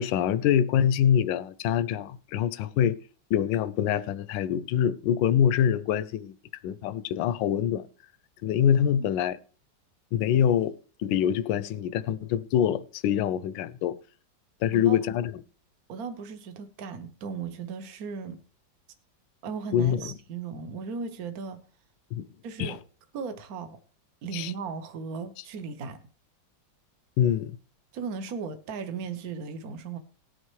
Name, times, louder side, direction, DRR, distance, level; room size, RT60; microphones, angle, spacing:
voice 1, 0.0-3.0 3.3-6.3 6.6-7.8 8.4-9.4 10.1-10.7 11.0-13.9 14.6-15.3 19.7-20.1 22.1-22.2 22.6-22.8 24.3-24.5 27.2-27.6, left 9 dB, 80° left, 1.3 m, -25 dB
voice 2, 15.9-18.4 19.4-21.6 22.4-22.8 23.1-23.8 24.2-26.0 27.9-30.0, right 5 dB, 60° right, 1.2 m, -36 dB
18.5 x 6.5 x 3.1 m
omnidirectional pair, 2.1 m